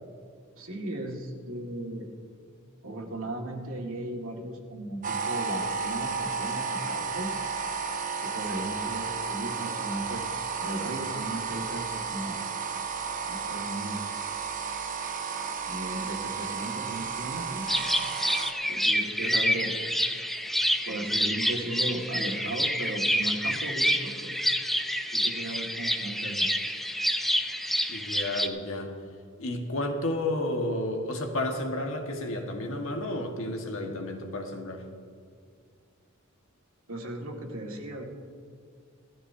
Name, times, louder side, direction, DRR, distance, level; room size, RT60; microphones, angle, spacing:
voice 1, 0.6-2.1 2.8-7.3 8.2-10.4 10.6-12.5 13.2-14.1 15.7-17.7 18.3-18.4 18.7-19.7 20.9-24.5 25.1-26.5 36.9-38.0, right 1 dB, 80° right, 0 dB, 1.9 m, -36 dB
sound 1, 5.0-18.5, right 5 dB, 40° right, 0.8 m, -33 dB
sound 2, 17.7-28.5, equal, ahead, 0.5 m, -28 dB
voice 2, 27.9-29.0 29.4-34.8, left 1 dB, 70° left, 2 dB, 1.6 m, -31 dB
18.0 x 13.5 x 2.7 m, 2.2 s
head